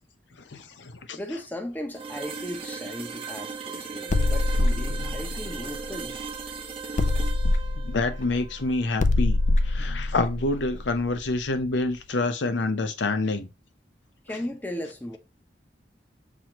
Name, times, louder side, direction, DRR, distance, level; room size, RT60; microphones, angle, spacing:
voice 1, 0.5-1.2 7.9-9.4 9.6-13.5, left 2 dB, 90° left, 0.6 m, -27 dB
voice 2, 1.1-6.1 14.3-15.2, left 1 dB, 10° left, 0.7 m, -36 dB
sound 1, 1.9-9.8, right 5 dB, 30° right, 0.8 m, -38 dB
sound 2, 4.1-6.4 7.0-11.6, left 2 dB, 45° left, 0.4 m, -25 dB
6.0 x 2.9 x 2.9 m
head